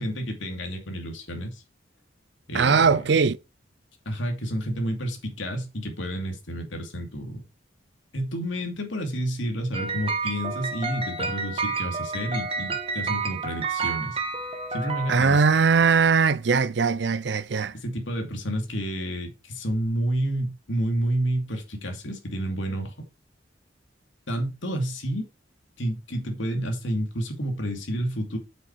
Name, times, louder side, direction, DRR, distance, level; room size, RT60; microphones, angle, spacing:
voice 1, 0.0-1.6 2.5-3.1 4.1-7.4 8.1-14.2 14.7-15.4 17.7-22.9 24.3-25.3 25.8-28.4, right 1 dB, 85° left, 2.6 m, -30 dB
voice 2, 2.5-3.4 15.1-17.7, right 5 dB, 65° right, 0.5 m, -20 dB
sound 1, 9.7-15.7, right 4 dB, 30° right, 1.3 m, -30 dB
7.7 x 6.6 x 4.7 m
head